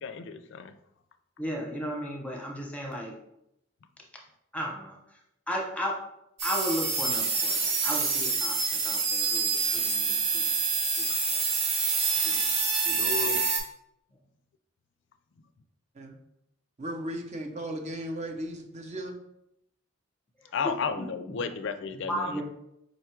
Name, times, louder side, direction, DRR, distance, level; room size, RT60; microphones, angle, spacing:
voice 1, 0.0-0.7 12.9-13.4 20.5-22.4, left 5 dB, 65° left, 10 dB, 0.4 m, -33 dB
voice 2, 1.4-3.1 4.5-5.0 5.5-6.0 6.4-10.5 11.0-11.4 12.2-12.4 12.8-13.3 20.6-20.7 21.3-21.4 22.1-22.4, equal, 5° left, -1 dB, 0.8 m, -35 dB
sound 1, 6.4-13.6, right 4 dB, 85° right, 1.5 m, -27 dB
voice 3, 16.8-19.2, right 1 dB, 35° right, 2 dB, 0.7 m, -36 dB
5.1 x 2.3 x 4.4 m, 0.79 s
head